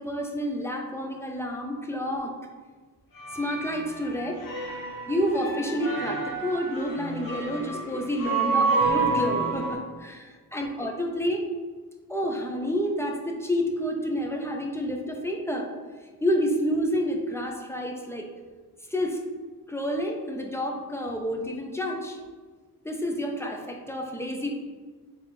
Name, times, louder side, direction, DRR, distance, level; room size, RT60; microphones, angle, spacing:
voice 1, 0.0-2.3 3.3-4.4 5.1-11.4 12.1-15.7 16.2-18.3 18.9-19.2 19.7-22.2 22.8-24.5, equal, 5° left, 1 dB, 0.5 m, -29 dB
sound 1, 3.2-9.7, right 3 dB, 60° left, 0.9 m, -29 dB
3.4 x 3.3 x 4.1 m, 1.4 s
cardioid pair, 85°, 38 cm